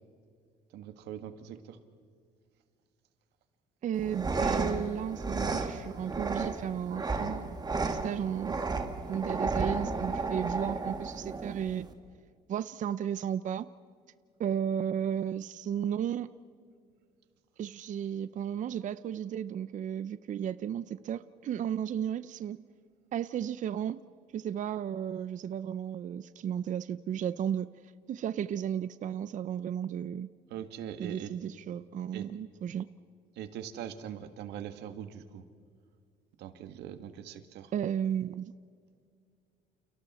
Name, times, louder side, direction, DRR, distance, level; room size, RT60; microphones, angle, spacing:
voice 1, 0.7-1.8 30.5-31.3 32.1-32.3 33.3-35.4 36.4-37.7, right 10 dB, 85° right, 9 dB, 1.7 m, -42 dB
voice 2, 3.8-7.6 8.0-8.6 9.0-11.9 12.5-13.7 14.4-16.3 17.6-22.6 23.1-24.0 24.3-27.7 28.1-30.3 31.0-32.9 37.7-38.6, right 9 dB, 50° right, 14 dB, 0.6 m, -34 dB
sound 1, 3.9-11.9, right 3 dB, 25° right, 2.0 m, -33 dB
29.5 x 29.5 x 4.3 m, 2.2 s
cardioid pair, 110°, 17 cm